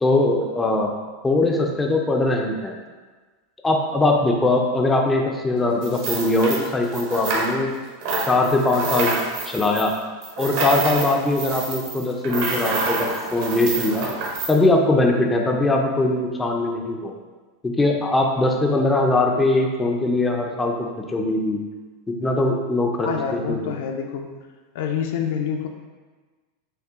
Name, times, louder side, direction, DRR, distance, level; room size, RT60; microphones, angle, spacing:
voice 1, 0.0-0.9 1.2-2.7 3.6-7.7 8.3-9.1 9.5-9.9 10.4-14.1 14.5-17.1 17.6-21.6 22.2-23.6, left 2 dB, 10° left, 1 dB, 0.4 m, -21 dB
sound 1, 5.8-7.8 8.0-14.5, right 3 dB, 60° right, 0.9 m, -27 dB
voice 2, 23.0-24.3 24.7-25.7, left 7 dB, 70° left, 3 dB, 0.5 m, -27 dB
5.5 x 2.1 x 3.5 m, 1.3 s
supercardioid pair, 140°, 0 cm